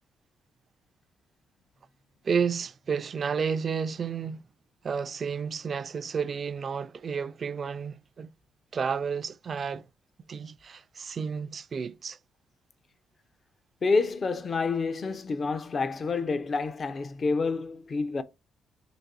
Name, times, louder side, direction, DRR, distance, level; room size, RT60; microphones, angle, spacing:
voice 1, 2.2-4.4 4.8-8.3 8.7-9.9 10.3-12.2, right 6 dB, 45° right, 0.3 m, -31 dB
voice 2, 13.8-18.2, left 4 dB, 40° left, 0.5 m, -28 dB
3.9 x 2.6 x 2.5 m
cardioid pair, 90°, 0 cm